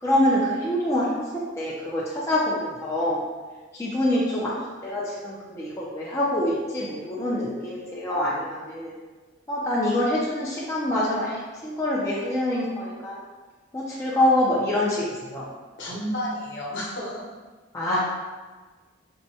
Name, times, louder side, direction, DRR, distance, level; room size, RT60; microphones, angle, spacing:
voice 1, 0.0-3.3 3.7-8.9 9.5-13.2 13.7-15.5 17.7-18.0, left 1 dB, 15° left, -7 dB, 0.4 m, -25 dB
voice 2, 15.8-17.2, equal, 55° left, -5 dB, 0.9 m, -31 dB
4.3 x 2.2 x 2.7 m, 1.4 s
head